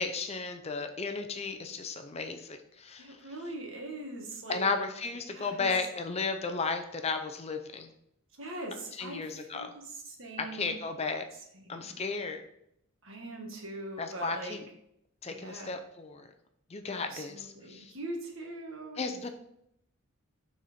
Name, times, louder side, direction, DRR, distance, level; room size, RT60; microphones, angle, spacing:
voice 1, 0.0-3.2 4.5-7.9 9.0-9.7 10.4-11.2 11.7-12.4 14.0-14.7 15.2-16.3 16.7-17.9 19.0-19.3, left 4 dB, 30° left, 6 dB, 0.5 m, -34 dB
voice 2, 3.0-4.7 5.2-5.7 8.4-10.7 11.5-12.0 13.0-14.6 15.3-15.8 16.9-19.0, right 2 dB, 60° right, 1 dB, 1.5 m, -42 dB
6.5 x 4.3 x 5.0 m, 0.75 s
head